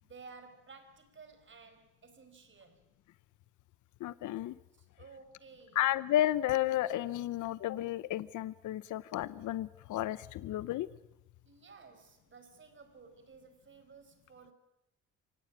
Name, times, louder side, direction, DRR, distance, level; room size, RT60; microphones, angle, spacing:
voice 1, 0.0-2.9 4.7-5.9 11.4-14.5, right 4 dB, 40° right, 8 dB, 4.7 m, -55 dB
voice 2, 4.0-4.6 5.8-10.9, left 13 dB, 80° left, 17 dB, 0.8 m, -32 dB
24.5 x 18.5 x 8.6 m, 0.94 s
cardioid pair, 90°, 30 cm